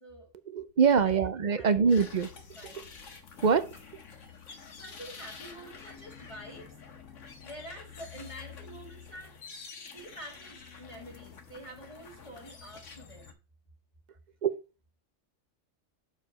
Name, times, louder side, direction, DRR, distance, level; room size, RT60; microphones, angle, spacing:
voice 1, 0.5-2.3 3.4-3.7 14.4-14.5, right 6 dB, 50° right, 0.6 m, -24 dB
voice 2, 1.5-1.9 2.5-2.9 3.3-3.5 4.8-6.7 7.4-9.4 9.9-13.4, right 1 dB, 25° left, 1.6 m, -47 dB
sound 1, 1.9-13.3, left 6 dB, 75° left, 1.6 m, -48 dB
6.7 x 5.0 x 5.2 m
omnidirectional pair, 1.3 m